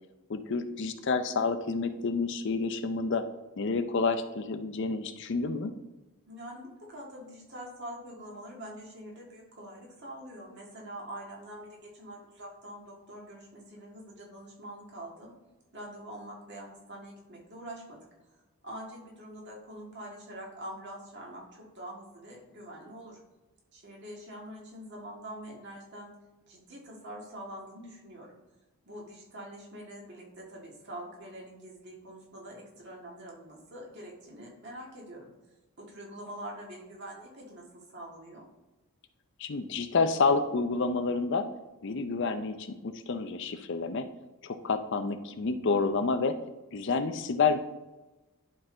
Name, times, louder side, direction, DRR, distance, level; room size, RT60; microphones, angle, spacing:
voice 1, 0.3-3.3 3.6-5.7 39.4-41.5 41.8-44.0 44.4-46.4 46.7-47.6, left 4 dB, 55° left, 9 dB, 0.5 m, -29 dB
voice 2, 6.3-15.3 15.7-18.4 18.6-23.2 23.7-26.1 26.5-28.4 28.9-35.3 35.8-38.4, right 1 dB, 50° right, -2 dB, 1.8 m, -45 dB
11.0 x 3.9 x 3.8 m, 1.1 s
head